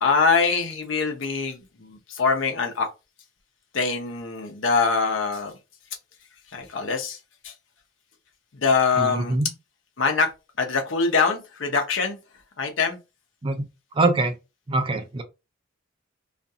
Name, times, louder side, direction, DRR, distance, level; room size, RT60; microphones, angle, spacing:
voice 1, 0.0-2.9 3.7-5.6 6.5-7.2 7.4-7.5 8.5-9.4 10.0-10.3 10.6-12.2 12.6-13.0, left 4 dB, 75° left, 0.7 m, -23 dB
voice 2, 9.0-9.5 13.4-13.6 13.9-14.3 14.7-15.2, right 2 dB, 25° right, 0.4 m, -23 dB
2.5 x 2.3 x 2.7 m
head